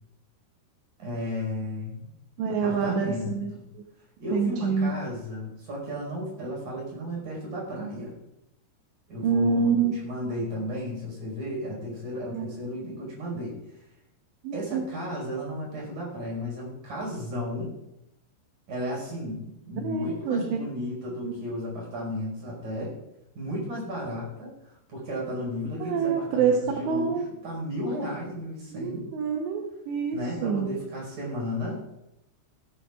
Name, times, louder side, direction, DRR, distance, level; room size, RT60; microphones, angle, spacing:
voice 1, 1.0-2.1 2.6-3.6 4.2-8.1 9.1-13.8 14.5-17.7 18.7-19.4 19.7-22.9 23.3-29.1 30.1-31.8, equal, 40° right, -3 dB, 6.3 m, -34 dB
voice 2, 2.4-3.8 4.3-5.0 9.2-9.9 12.3-12.5 14.4-14.9 19.8-20.4 21.2-21.3 25.8-27.3 28.7-30.8, right 5 dB, 75° right, 1 dB, 2.8 m, -27 dB
15.0 x 15.0 x 2.5 m, 0.87 s
omnidirectional pair, 5.9 m